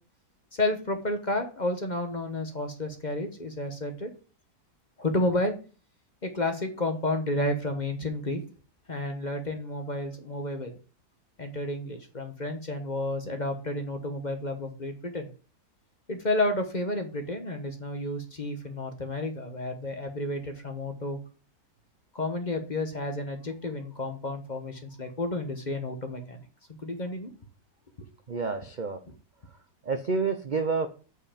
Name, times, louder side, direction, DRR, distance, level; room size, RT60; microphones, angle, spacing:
voice 1, 0.5-4.1 5.0-5.6 6.2-8.4 8.9-10.8 11.4-15.3 16.1-21.2 22.1-26.4 26.8-27.3 28.0-28.1, left 1 dB, 30° left, 5 dB, 1.1 m, -31 dB
voice 2, 28.3-29.0 29.8-30.9, right 4 dB, 45° right, 7 dB, 0.6 m, -28 dB
8.2 x 4.8 x 5.1 m, 0.36 s
omnidirectional pair, 1.7 m